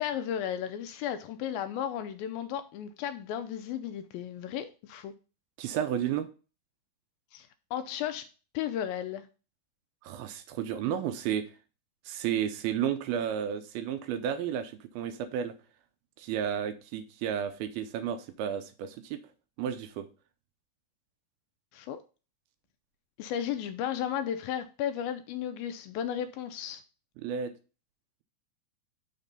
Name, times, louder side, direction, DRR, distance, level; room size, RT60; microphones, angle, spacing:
voice 1, 0.0-5.1 7.3-8.3 8.5-9.3 21.7-22.0 23.2-26.8, left 10 dB, 80° left, 2.2 m, -34 dB
voice 2, 5.6-6.3 10.0-11.5 12.1-15.6 16.2-19.2 19.6-20.1 27.2-27.5, right 9 dB, 80° right, 2.4 m, -32 dB
6.0 x 4.2 x 5.1 m
omnidirectional pair, 4.5 m